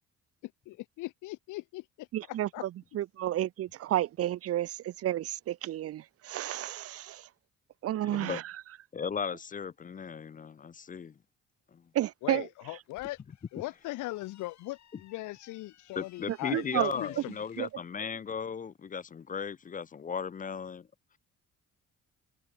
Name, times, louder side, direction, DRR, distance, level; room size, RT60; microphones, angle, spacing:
voice 1, 0.4-2.1 2.5-2.6 12.2-13.2 13.5-17.3, left 19 dB, 85° left, 0.7 m, -39 dB
voice 2, 2.1-7.3 7.8-8.5 11.9-12.5 16.3-16.9 17.6-17.7, right 13 dB, 50° right, 0.5 m, -32 dB
voice 3, 8.0-8.4 8.9-11.1 11.7-11.8 16.0-20.9, left 6 dB, 30° left, 0.5 m, -36 dB
sound 1, 12.6-17.8, left 10 dB, 65° left, 5.4 m, -61 dB
cardioid pair, 90°, 30 cm